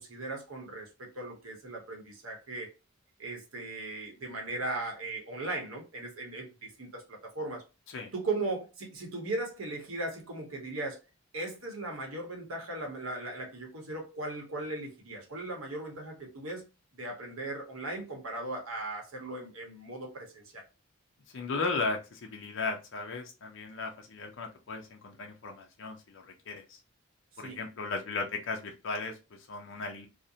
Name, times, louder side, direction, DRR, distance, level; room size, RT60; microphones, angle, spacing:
voice 1, 0.0-2.7 3.2-7.6 8.1-11.0 11.3-16.7 16.9-20.6 27.4-27.6, right 2 dB, 80° right, 0.9 m, -38 dB
voice 2, 21.3-26.8 27.4-30.1, left 3 dB, 60° left, 0.5 m, -36 dB
2.5 x 2.1 x 2.7 m
head